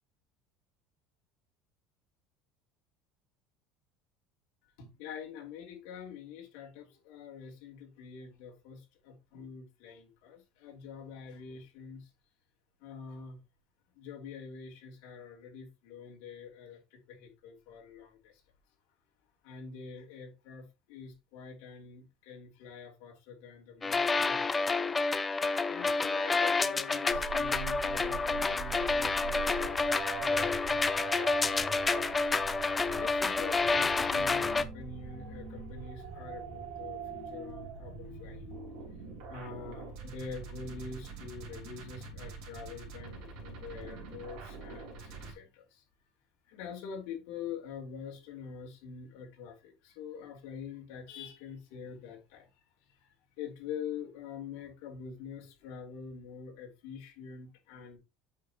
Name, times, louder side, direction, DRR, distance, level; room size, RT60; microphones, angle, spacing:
voice 1, 4.8-12.1 12.8-13.4 14.0-18.4 19.4-24.9 25.7-29.8 30.1-32.2 32.9-38.5 39.3-45.8 46.5-52.5 53.0-58.0, left 6 dB, 65° left, 3.1 m, -45 dB
sound 1, 23.8-34.6, left 4 dB, 10° left, 0.4 m, -29 dB
sound 2, 27.1-45.3, right 6 dB, 55° right, 3.3 m, -43 dB
8.3 x 6.2 x 3.0 m
cardioid pair, 170°, 0 cm